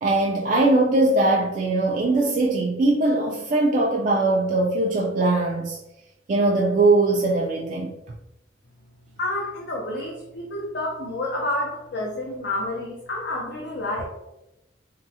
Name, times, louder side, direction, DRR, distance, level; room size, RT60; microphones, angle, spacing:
voice 1, 0.0-5.8 6.3-7.9, right 2 dB, 45° right, -2 dB, 0.3 m, -21 dB
voice 2, 9.2-14.1, left 1 dB, 60° left, -2 dB, 0.5 m, -29 dB
3.5 x 2.0 x 2.7 m, 0.90 s
head